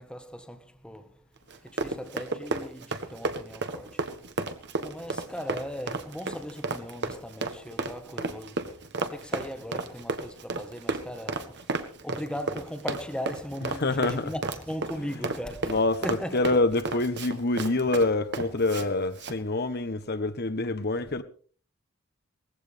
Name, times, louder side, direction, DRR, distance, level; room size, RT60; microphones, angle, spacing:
voice 1, 0.0-4.1 4.8-11.7 12.0-16.4, equal, 5° left, 1.3 m, -38 dB
Run, 1.5-18.9 19.2-19.4, right 3 dB, 55° right, 1.5 m, -33 dB
voice 2, 13.8-14.3 15.7-16.0 16.3-21.2, left 2 dB, 50° left, 1.1 m, -26 dB
19.5 x 16.0 x 3.5 m
head